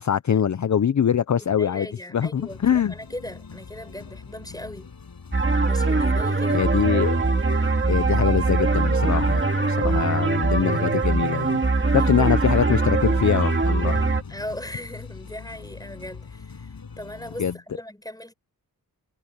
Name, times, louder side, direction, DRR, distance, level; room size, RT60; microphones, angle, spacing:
voice 1, 0.0-2.9 6.5-7.2 7.9-11.6 11.9-14.0 17.4-17.5, left 8 dB, 50° left, 0.6 m, -23 dB
voice 2, 1.4-4.9 5.7-6.7 11.8-12.1 14.3-18.3, left 1 dB, 10° left, 6.4 m, -38 dB
sound 1, 2.3-17.6, left 5 dB, 75° left, 6.3 m, -43 dB
sound 2, 5.3-14.2, right 3 dB, 30° right, 2.1 m, -22 dB
wide cardioid pair, 110°, 37 cm